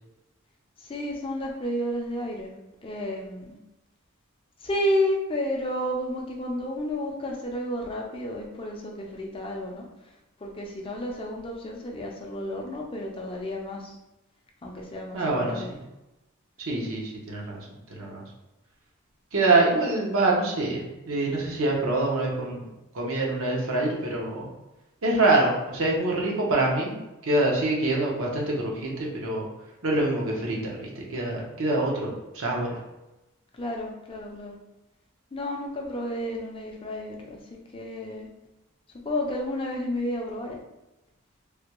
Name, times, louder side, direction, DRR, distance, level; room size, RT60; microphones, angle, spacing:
voice 1, 0.8-2.5 2.8-3.6 4.6-9.9 10.4-14.0 14.6-15.7 33.5-34.6 35.3-38.3 39.0-40.6, left 1 dB, 25° left, 0 dB, 0.5 m, -31 dB
voice 2, 15.1-15.8 16.7-17.6 17.9-18.2 19.3-22.6 22.9-24.5 25.0-29.4 29.8-32.8, right 2 dB, 65° right, -2 dB, 0.8 m, -25 dB
3.3 x 2.2 x 2.9 m, 0.96 s
head